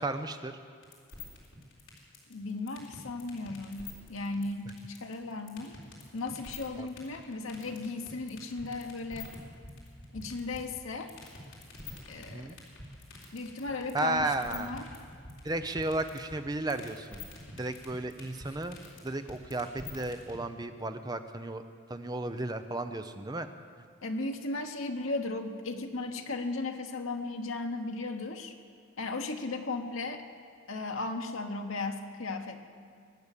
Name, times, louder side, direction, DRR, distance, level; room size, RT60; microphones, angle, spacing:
voice 1, 0.0-0.6 6.8-6.9 12.3-12.6 13.9-14.7 15.4-17.3 17.6-21.6 21.9-23.5, right 2 dB, 20° right, 8 dB, 0.6 m, -34 dB
sound 1, 0.8-20.4, left 4 dB, 75° left, 3.6 m, -46 dB
voice 2, 2.3-5.8 6.1-9.3 10.1-11.1 12.1-12.6 13.3-14.9 24.0-28.5 29.0-30.2 30.7-32.7, left 3 dB, 90° left, 4 dB, 1.1 m, -36 dB
22.5 x 8.7 x 6.7 m, 2.1 s
head